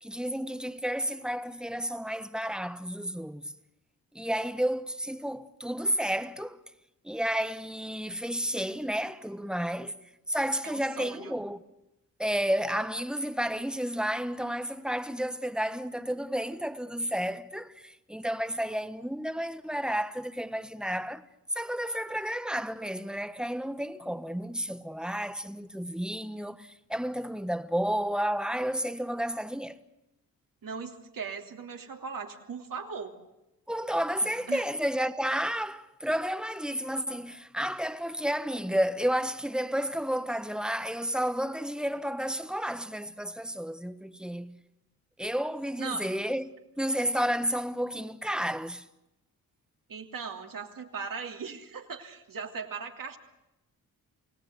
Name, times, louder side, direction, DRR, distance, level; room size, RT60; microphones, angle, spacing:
voice 1, 0.0-3.5 4.1-6.6 7.0-9.9 10.3-11.6 12.2-21.2 21.5-29.8 33.7-44.6 45.2-48.8, equal, ahead, 1.2 m, -31 dB
voice 2, 10.6-11.3 30.6-33.2 34.2-34.7 45.8-46.0 49.9-53.2, right 5 dB, 70° right, 3.0 m, -39 dB
29.0 x 17.5 x 8.2 m
cardioid pair, 80°, 35 cm